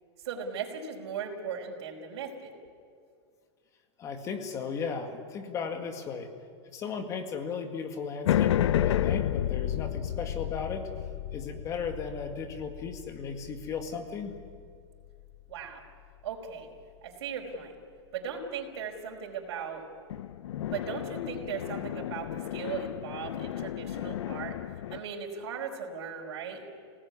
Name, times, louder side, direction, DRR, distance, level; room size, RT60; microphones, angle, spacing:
voice 1, 0.2-2.5 15.5-15.8 16.2-16.7 17.0-17.8 18.1-19.9 20.7-24.6 24.9-26.6, right 6 dB, 65° right, 0 dB, 4.8 m, -37 dB
voice 2, 4.0-6.3 6.7-10.9 11.3-14.3, left 5 dB, 20° left, 6 dB, 2.0 m, -36 dB
sound 1, 8.2-14.8 20.1-25.0, left 11 dB, 80° left, 0.7 m, -32 dB
27.0 x 18.5 x 9.8 m, 2.3 s
supercardioid pair, 165°, 15 cm